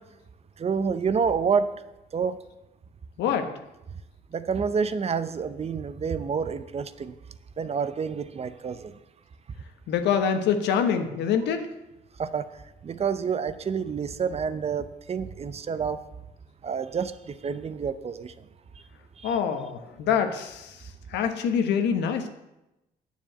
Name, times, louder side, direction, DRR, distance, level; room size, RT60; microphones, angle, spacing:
voice 1, 0.6-1.7 2.1-2.4 4.3-7.2 7.6-9.0 12.2-12.5 12.8-16.0 16.6-18.3 19.2-19.4, right 6 dB, 35° right, 13 dB, 0.7 m, -28 dB
voice 2, 3.2-3.5 9.9-11.7 19.2-20.8 21.1-22.3, left 7 dB, 85° left, 7 dB, 1.2 m, -25 dB
9.4 x 7.3 x 7.6 m, 0.94 s
cardioid pair, 100°, 18 cm